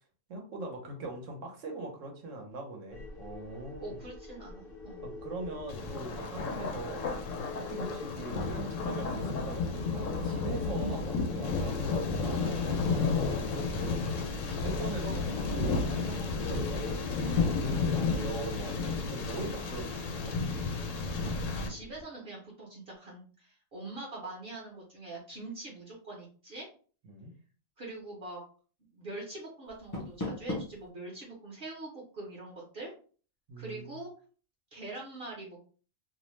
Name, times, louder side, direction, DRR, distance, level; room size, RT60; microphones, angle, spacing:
voice 1, 0.3-4.0 5.0-11.7 12.2-15.1 15.5-16.9 17.4-20.4 27.0-27.4 33.5-34.0, right 2 dB, 85° right, 2 dB, 1.1 m, -42 dB
sound 1, 2.9-22.0, left 3 dB, 55° left, 0.8 m, -45 dB
voice 2, 3.8-5.0 10.9-11.1 12.4-12.6 15.0-15.3 21.7-26.7 27.8-28.4 28.9-32.9 33.6-34.1 34.7-35.6, right 2 dB, 55° right, -3 dB, 0.9 m, -43 dB
Thunder, 5.7-21.7, left 4 dB, 80° left, 1.0 m, -32 dB
Door, 29.6-30.9, left 2 dB, 25° left, 0.4 m, -37 dB
2.7 x 2.0 x 3.0 m, 0.41 s
omnidirectional pair, 1.3 m